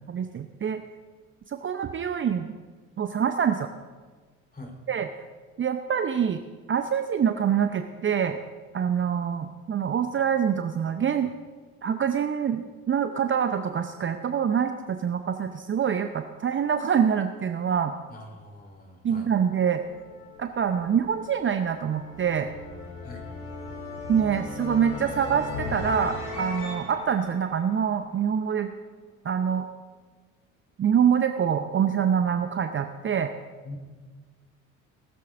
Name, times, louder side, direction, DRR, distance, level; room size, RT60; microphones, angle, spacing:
voice 1, 0.1-0.8 1.5-2.5 3.0-3.7 4.9-5.1 5.6-8.4 8.7-11.3 11.8-17.9 19.0-19.8 20.4-22.5 24.1-28.7 29.2-29.7 30.8-33.3, right 8 dB, 30° right, 8 dB, 0.7 m, -25 dB
voice 2, 18.1-19.3 23.0-23.3 33.6-33.9, left 1 dB, 20° left, 0 dB, 3.8 m, -43 dB
sound 1, 19.4-28.4, left 2 dB, 80° left, 3.2 m, -38 dB
19.0 x 13.0 x 2.6 m, 1.5 s
figure-of-eight pair, 55°, 42 cm